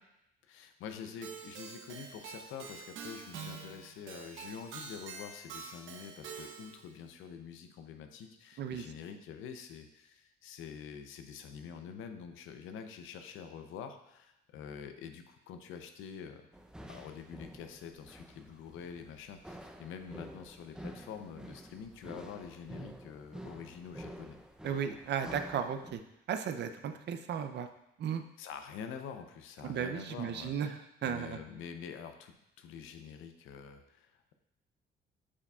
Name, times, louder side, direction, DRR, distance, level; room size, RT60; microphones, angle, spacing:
voice 1, 0.5-16.5 16.9-24.4 28.4-34.3, left 7 dB, 90° left, 7 dB, 0.6 m, -46 dB
Keyboard (musical), 1.2-6.9, right 5 dB, 80° right, 0.8 m, -46 dB
sound 1, 16.5-26.0, equal, 5° right, 0.6 m, -49 dB
voice 2, 24.6-26.0 26.3-27.7 28.0-28.2 29.6-31.4, right 8 dB, 60° right, 9 dB, 0.5 m, -35 dB
8.4 x 4.8 x 2.4 m, 0.86 s
cardioid pair, 90°, 20 cm